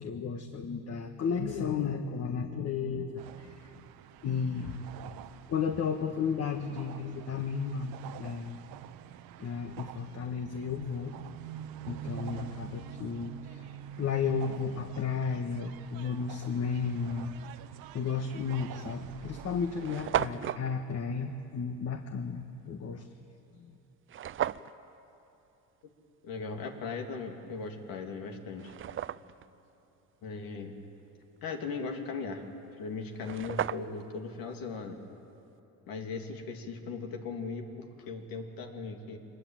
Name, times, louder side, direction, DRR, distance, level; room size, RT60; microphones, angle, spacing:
voice 1, 0.0-3.8 4.2-4.8 5.5-8.7 9.4-11.1 11.9-17.3 17.9-23.1 23.5-23.8, left 6 dB, 45° left, 6 dB, 1.4 m, -33 dB
sound 1, 3.2-20.2, right 10 dB, 80° right, 1.2 m, -46 dB
sound 2, 18.3-18.5 19.2-19.3 19.5-19.6 19.8-20.6 24.1-24.7 27.7-27.8 28.3-29.5 32.8-32.9 33.1-34.1, right 10 dB, 35° right, 0.5 m, -34 dB
voice 2, 26.2-28.7 30.2-30.7 31.4-32.4 32.8-35.0 35.9-39.2, left 4 dB, 75° left, 3 dB, 2.9 m, -38 dB
23.5 x 21.0 x 9.0 m, 2.9 s
cardioid pair, 110°, 36 cm